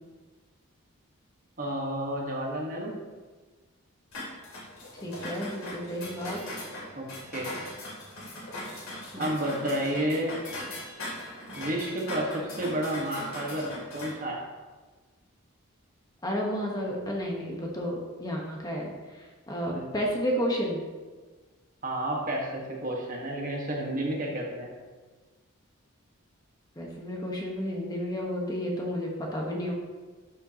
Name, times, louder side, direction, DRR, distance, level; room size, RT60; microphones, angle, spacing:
voice 1, 1.6-2.9 6.9-7.5 9.2-10.3 11.6-14.4 19.7-19.9 21.8-24.7, right 1 dB, 40° right, -1 dB, 1.4 m, -31 dB
sound 1, 4.1-14.1, left 1 dB, 70° left, 2.7 m, -40 dB
voice 2, 5.0-6.4 9.1-9.3 16.2-20.8 26.8-29.7, equal, 15° left, -2 dB, 1.2 m, -32 dB
12.0 x 6.6 x 2.9 m, 1.3 s
head